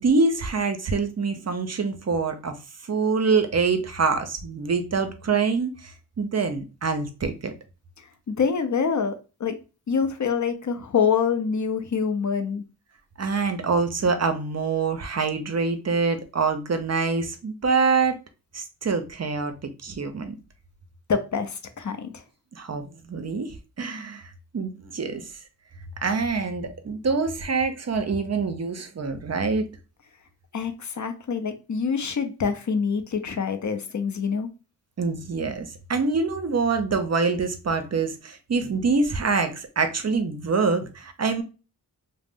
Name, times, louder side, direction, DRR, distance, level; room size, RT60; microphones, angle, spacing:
voice 1, 0.0-2.6 2.9-7.5 13.2-18.1 18.5-19.5 19.8-20.4 22.5-24.2 24.5-25.3 26.0-29.6 35.0-41.4, right 4 dB, 40° right, 0.5 m, -25 dB
voice 2, 8.3-9.1 9.4-9.6 9.9-12.6 21.1-22.2 30.5-34.5, left 6 dB, 45° left, 0.5 m, -25 dB
2.5 x 2.0 x 3.4 m
wide cardioid pair, 65°, 41 cm